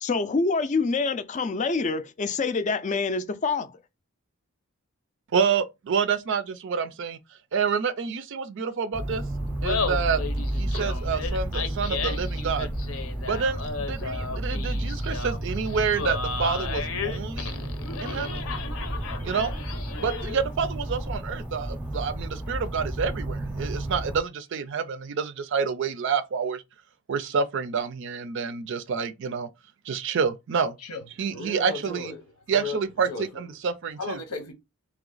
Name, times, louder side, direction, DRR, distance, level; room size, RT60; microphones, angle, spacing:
voice 1, 0.0-3.8, left 4 dB, 35° left, 0.4 m, -26 dB
voice 2, 5.3-7.2 7.5-9.2 9.6-10.2 10.5-12.7 13.3-17.6 18.0-18.4 19.2-19.5 20.0-26.6 27.1-29.5 29.9-30.8 31.2-32.1 32.5-33.1 33.4-34.2, right 6 dB, 55° right, 0.4 m, -28 dB
sound 1, 8.9-24.2, right 1 dB, 5° right, 0.6 m, -32 dB
Laughter, 9.5-20.5, left 5 dB, 70° left, 0.7 m, -34 dB
voice 3, 30.8-32.2 32.5-32.8 33.1-33.3 34.0-34.5, left 3 dB, 90° left, 1.0 m, -35 dB
3.2 x 3.0 x 3.8 m
head